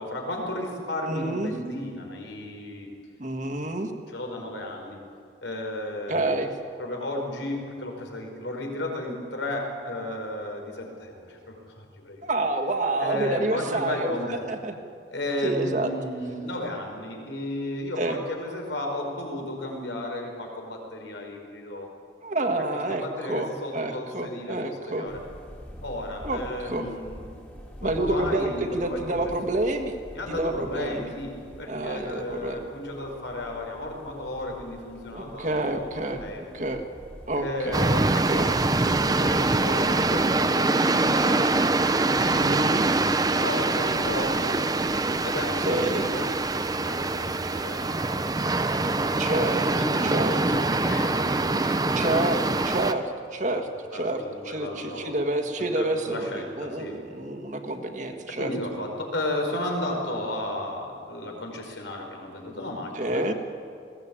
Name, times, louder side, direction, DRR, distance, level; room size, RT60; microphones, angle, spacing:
voice 1, 0.0-2.9 4.1-5.0 5.4-6.4 6.8-12.2 13.0-14.5 15.1-21.9 22.7-25.2 25.8-27.2 27.8-29.3 30.1-36.6 37.3-41.8 43.4-44.7 45.2-46.3 46.7-49.0 49.7-52.8 53.4-53.6 53.9-55.1 55.6-57.0 58.3-63.3, left 1 dB, 85° left, 1 dB, 4.8 m, -34 dB
voice 2, 1.1-1.5 3.2-3.9 6.1-6.5 12.2-14.8 15.4-15.9 18.0-18.2 22.2-25.1 26.2-26.9 27.8-30.0 30.3-31.1 31.7-32.6 35.1-36.3 36.5-36.8 37.3-38.6 42.3-42.9 45.6-46.0 49.2-49.7 50.0-50.4 51.9-52.4 52.6-58.5 62.9-63.3, right 2 dB, 40° right, 6 dB, 1.7 m, -28 dB
sound 1, 25.1-40.4, equal, 10° left, 2.2 m, -46 dB
sound 2, 37.7-52.9, right 2 dB, 20° right, 0.6 m, -24 dB
21.0 x 17.0 x 8.8 m, 2.4 s
head